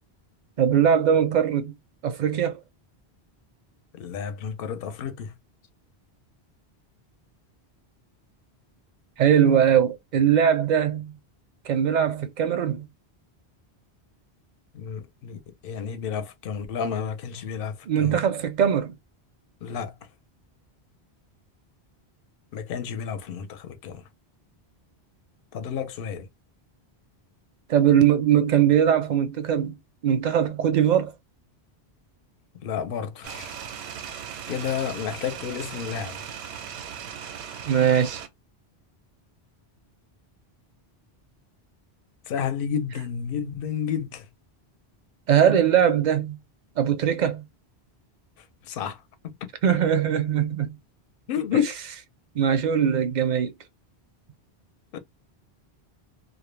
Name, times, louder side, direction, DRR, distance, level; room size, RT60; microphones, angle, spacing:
voice 1, 0.6-1.7 2.0-2.6 9.2-11.2 11.7-12.9 17.9-18.9 27.7-29.7 30.0-31.1 37.7-38.2 45.3-46.4 46.8-47.4 49.6-50.8 51.5-51.6 52.3-53.5, right 9 dB, 55° right, 0.5 m, -21 dB
voice 2, 3.9-5.3 14.7-18.2 19.6-19.9 22.5-24.0 25.5-26.3 32.6-33.5 34.5-36.2 42.3-44.3 48.7-49.0 49.2-49.4 51.3-51.7 54.9-55.0, left 8 dB, 65° left, 0.7 m, -31 dB
sound 1, 33.2-38.3, right 8 dB, 80° right, 0.8 m, -38 dB
2.2 x 2.0 x 3.1 m
omnidirectional pair, 1.1 m